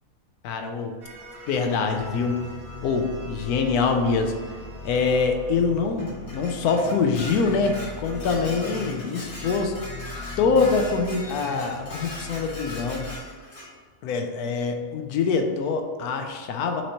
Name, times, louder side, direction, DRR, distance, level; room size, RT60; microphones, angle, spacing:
voice 1, 0.4-1.0 1.5-2.4 2.8-4.3 4.8-9.7 10.4-13.1 14.0-16.8, left 4 dB, 85° left, 5 dB, 1.1 m, -24 dB
sound 1, 1.0-6.5, right 1 dB, 75° right, 1.1 m, -46 dB
sound 2, 2.0-13.2, left 2 dB, 65° left, 1.2 m, -39 dB
Dishes pots and pans, 6.0-13.7, left 1 dB, 50° left, 1.5 m, -40 dB
6.0 x 3.0 x 2.8 m, 1.5 s
omnidirectional pair, 1.6 m